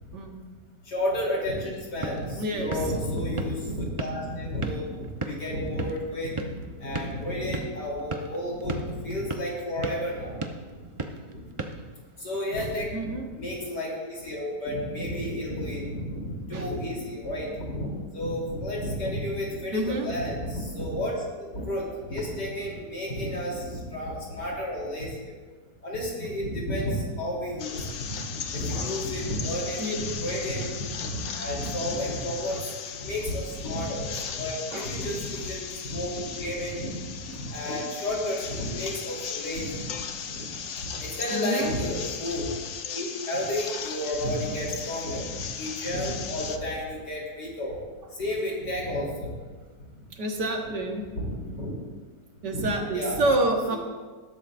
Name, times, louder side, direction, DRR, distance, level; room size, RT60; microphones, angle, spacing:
voice 1, 0.8-10.4 10.7-10.9 11.7-11.8 12.2-25.4 25.8-40.5 40.8-42.6 42.9-47.8 48.1-49.3 51.1-51.7 52.5-52.7 52.9-53.2 53.7-53.8, left 1 dB, 70° left, -3 dB, 3.9 m, -32 dB
sound 1, 1.7-12.5, right 3 dB, 45° right, 0.4 m, -38 dB
voice 2, 2.3-2.7 12.9-13.3 16.5-16.7 19.7-20.1 29.8-30.0 32.5-32.6 34.7-34.9 41.3-41.7 50.2-51.0 52.4-53.8, right 2 dB, 75° right, 2 dB, 2.0 m, -28 dB
sound 2, 27.6-46.6, left 7 dB, 55° left, 0.9 m, -37 dB
19.5 x 12.5 x 2.6 m, 1.4 s
omnidirectional pair, 1.9 m